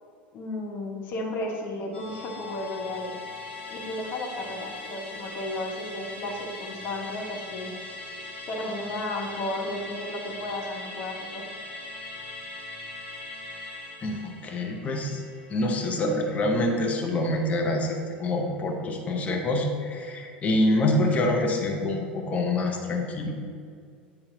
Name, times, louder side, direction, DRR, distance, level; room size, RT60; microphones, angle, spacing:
voice 1, 0.3-3.1 3.7-7.7 8.5-11.4, left 1 dB, 40° left, -1 dB, 1.3 m, -33 dB
Musical instrument, 1.9-16.6 16.9-17.0, left 3 dB, 80° left, 1.3 m, -40 dB
voice 2, 14.0-15.2 15.5-23.3, left 1 dB, 25° left, 2 dB, 0.9 m, -26 dB
9.6 x 4.2 x 2.8 m, 2.2 s
figure-of-eight pair, 75°, 6 cm